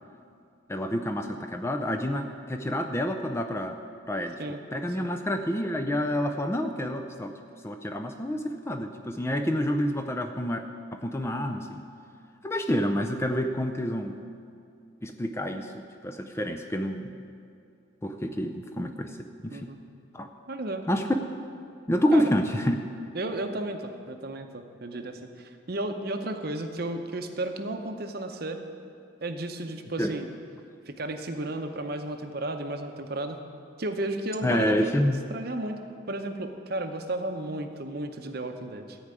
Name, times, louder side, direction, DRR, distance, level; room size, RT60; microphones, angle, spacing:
voice 1, 0.7-3.8 4.1-4.4 4.7-7.3 7.6-10.7 10.9-11.8 12.4-14.2 15.0-17.1 18.0-19.2 19.4-19.7 20.1-20.3 20.9-21.1 21.9-22.8 30.0-30.1 34.4-35.2, equal, 15° left, 5 dB, 0.4 m, -28 dB
voice 2, 20.5-20.8 22.1-22.3 23.1-28.6 29.2-30.3 30.9-33.4 33.8-34.9 35.3-35.8 36.1-39.0, right 1 dB, 50° right, 6 dB, 0.8 m, -33 dB
14.5 x 4.8 x 8.9 m, 2.5 s
head